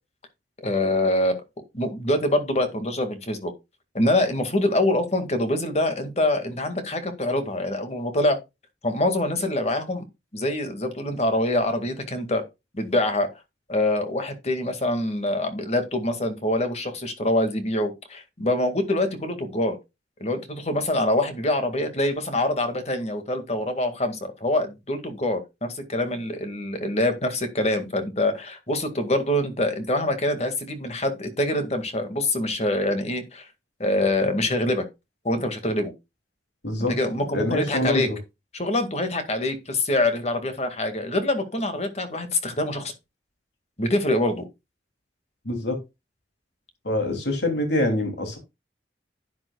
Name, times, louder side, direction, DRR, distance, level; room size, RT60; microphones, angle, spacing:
voice 1, 0.6-1.4 1.7-3.5 3.9-8.4 8.8-10.0 10.3-12.4 12.7-13.3 13.7-19.8 20.2-33.5 33.8-34.9 35.2-35.9 36.9-38.1 38.5-42.9 43.8-44.4, left 1 dB, 35° left, 2.0 m, -25 dB
voice 2, 37.3-38.2 45.4-45.8 46.8-48.4, left 1 dB, 75° left, 2.9 m, -25 dB
11.5 x 9.6 x 2.3 m
head